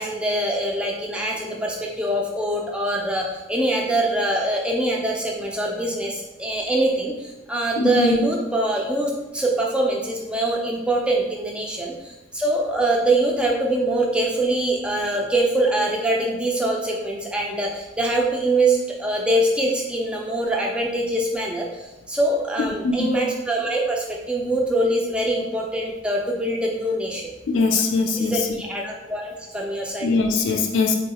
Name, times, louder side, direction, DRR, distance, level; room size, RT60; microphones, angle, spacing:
voice 1, 0.0-27.3 28.2-30.1, right 1 dB, 5° right, -2 dB, 0.4 m, -24 dB
voice 2, 7.8-8.2 22.6-23.2 27.5-28.5 30.0-31.0, left 3 dB, 75° left, 4 dB, 0.3 m, -21 dB
3.6 x 2.3 x 2.8 m, 1.0 s
head